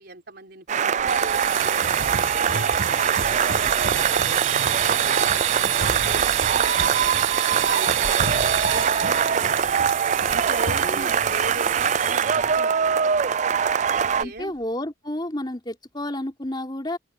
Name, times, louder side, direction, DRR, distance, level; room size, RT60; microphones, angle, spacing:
voice 1, 0.0-4.3 4.7-7.2 7.6-10.0 10.3-13.4 14.0-14.5, right 2 dB, 50° right, 4.7 m, -38 dB
sound 1, 0.7-14.2, right 7 dB, 35° right, 0.4 m, -23 dB
sound 2, 1.0-12.6 12.9-13.2 13.5-13.6 14.0-14.4, right 9 dB, 80° right, 6.7 m, -28 dB
voice 2, 14.2-17.0, left 1 dB, 20° left, 3.4 m, -31 dB
open air
head